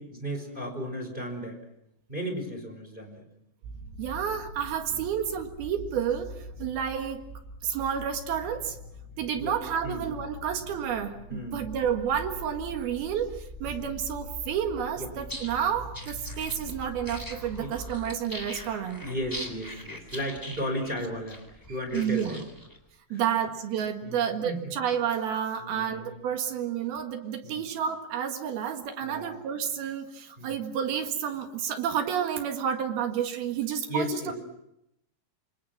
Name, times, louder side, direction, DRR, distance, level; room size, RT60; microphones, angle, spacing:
voice 1, 0.1-1.6 2.1-3.2 4.9-5.0 6.6-6.7 9.3-9.5 9.8-10.0 11.3-11.6 13.7-13.9 15.0-15.1 17.5-17.7 19.0-22.4 23.1-23.2 24.0-24.7 25.6-26.1 27.4-27.6 29.0-29.4 30.4-30.5 33.9-34.3, equal, 10° right, 4 dB, 4.6 m, -35 dB
sound 1, 3.6-18.0, equal, 85° right, 7.4 m, -43 dB
voice 2, 4.0-6.3 6.6-7.2 7.6-8.8 9.2-19.0 21.9-22.4 23.1-34.2, right 8 dB, 60° right, 5 dB, 3.0 m, -30 dB
sound 2, 15.2-22.8, equal, 5° left, 2.2 m, -42 dB
27.5 x 27.0 x 6.0 m, 0.82 s
omnidirectional pair, 6.0 m